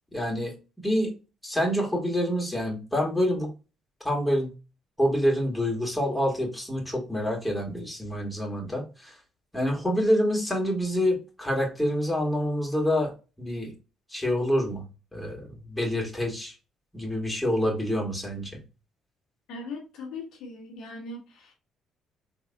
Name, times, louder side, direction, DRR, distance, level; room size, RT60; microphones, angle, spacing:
voice 1, 0.1-0.5 0.8-1.1 1.4-3.5 4.0-4.5 5.0-9.1 9.5-13.1 13.4-13.7 14.1-14.9 15.1-16.5 16.9-18.6, equal, 5° left, 2.1 m, -27 dB
voice 2, 19.5-21.5, left 3 dB, 70° left, 1.2 m, -39 dB
3.8 x 3.3 x 2.3 m
hypercardioid pair, 55°, 0 cm